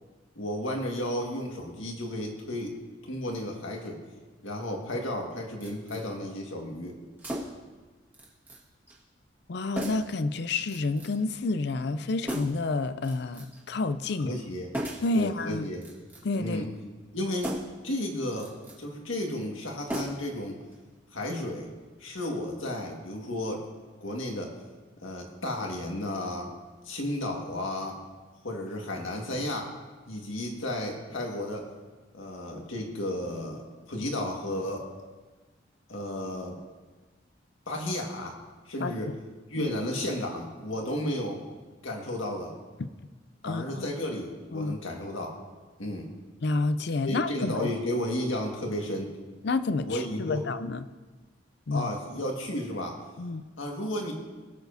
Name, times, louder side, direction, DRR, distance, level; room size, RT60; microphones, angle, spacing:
voice 1, 0.3-2.8 3.0-4.0 4.4-7.0 14.2-14.8 15.1-15.9 16.4-16.7 17.1-17.6 17.8-18.5 18.8-20.6 21.1-21.7 22.0-23.6 24.0-24.5 25.0-26.5 26.8-28.0 28.4-29.7 30.1-31.7 32.1-34.9 35.9-36.6 37.7-38.4 38.6-39.1 39.5-41.4 41.8-42.6 43.4-45.4 45.8-46.1 47.0-49.1 49.8-50.5 51.7-53.0 53.6-54.1, left 1 dB, 85° left, 0 dB, 1.8 m, -33 dB
sound 1, 5.6-6.0 7.2-7.7 8.1-8.6 8.9-9.0 9.8-10.2 10.7-11.2 12.2-12.7 13.0-13.6 14.7-15.2 15.7-16.4 17.4-17.8 18.3-18.8 19.9-20.4 20.7-20.8, equal, 10° right, 1.5 m, -36 dB
voice 2, 9.5-14.4 15.0-15.6 16.2-16.6 38.8-39.0 39.6-39.7 42.8-42.9 43.4-43.9 44.5-44.7 46.4-47.7 49.4-50.9 51.7-51.9 53.2-53.4, left 3 dB, 55° left, 13 dB, 0.4 m, -29 dB
20.5 x 7.0 x 2.7 m, 1.3 s
head